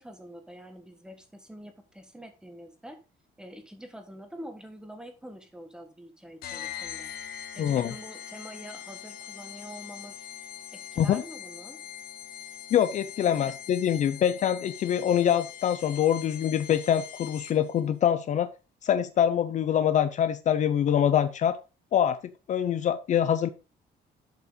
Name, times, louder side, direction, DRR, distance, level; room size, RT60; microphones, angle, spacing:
voice 1, 0.0-3.0 3.4-7.1 7.5-10.2 10.7-11.8 13.2-13.5, equal, 5° right, 6 dB, 1.5 m, -46 dB
sound 1, 6.4-17.8, left 10 dB, 65° left, 1.1 m, -42 dB
voice 2, 7.6-7.9 11.0-11.2 12.7-18.5 18.8-21.6 21.9-22.2 22.5-23.5, left 9 dB, 45° left, 12 dB, 0.6 m, -24 dB
11.5 x 5.6 x 3.9 m, 0.30 s
cardioid pair, 175°, 17 cm